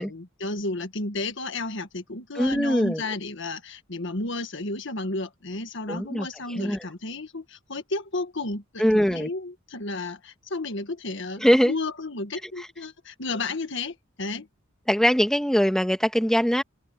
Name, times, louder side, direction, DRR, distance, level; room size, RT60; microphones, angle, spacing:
voice 1, 0.0-14.5, left 2 dB, 65° left, 1.7 m, -32 dB
voice 2, 2.3-3.0 5.9-6.9 8.8-9.3 11.4-11.7 12.4-12.7 14.9-16.6, equal, 5° left, 1.7 m, -22 dB
head